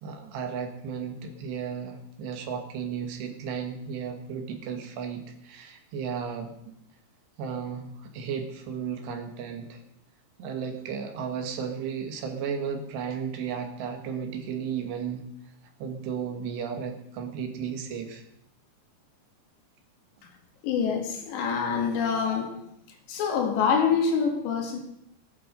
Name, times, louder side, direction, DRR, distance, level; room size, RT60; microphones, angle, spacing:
voice 1, 0.0-6.5 7.4-9.8 10.4-15.3 15.8-18.2, right 7 dB, 80° right, 5 dB, 3.9 m, -34 dB
voice 2, 20.6-22.6 23.1-24.8, left 6 dB, 85° left, 3 dB, 4.3 m, -26 dB
19.0 x 11.5 x 5.3 m, 0.76 s
omnidirectional pair, 4.9 m